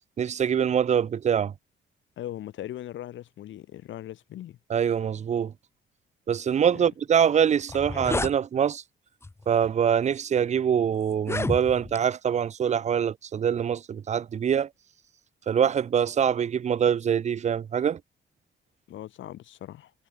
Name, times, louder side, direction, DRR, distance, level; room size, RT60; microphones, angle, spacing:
voice 1, 0.2-1.5 4.7-5.5 6.3-8.8 9.5-14.7 15.5-18.0, right 8 dB, 35° right, 0.5 m, -24 dB
voice 2, 2.2-4.6 6.7-6.9 18.9-19.9, left 12 dB, 70° left, 1.3 m, -39 dB
sound 1, 7.6-8.4 9.2-9.5 10.2-10.3 11.1-12.0, left 2 dB, 15° left, 0.7 m, -30 dB
cardioid pair, 90°, 20 cm